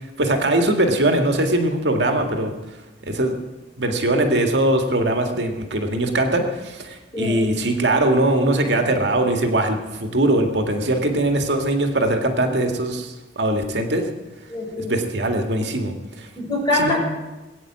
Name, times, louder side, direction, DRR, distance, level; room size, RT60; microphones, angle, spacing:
voice 1, 0.2-2.5 3.1-3.3 3.8-14.0 14.9-16.3 16.7-17.0, right 1 dB, 85° right, 4 dB, 2.0 m, -21 dB
voice 2, 14.5-14.9 16.4-17.0, left 1 dB, 25° left, -2 dB, 5.7 m, -23 dB
20.5 x 9.0 x 7.5 m, 1.1 s
head